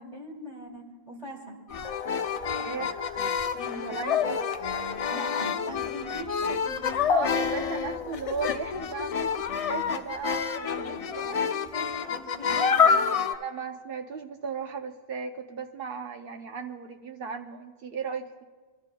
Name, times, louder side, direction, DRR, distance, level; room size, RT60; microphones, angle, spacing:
voice 1, 0.0-1.6 3.6-3.9 5.1-7.9 10.7-12.8, equal, 40° right, -2 dB, 2.1 m, -42 dB
sound 1, 1.7-13.3, left 6 dB, 50° left, 0.4 m, -28 dB
voice 2, 2.5-3.0 3.8-4.6 7.1-11.4 13.3-18.4, right 5 dB, 65° right, 4 dB, 0.9 m, -36 dB
24.5 x 13.0 x 2.2 m, 1.3 s
omnidirectional pair, 1.0 m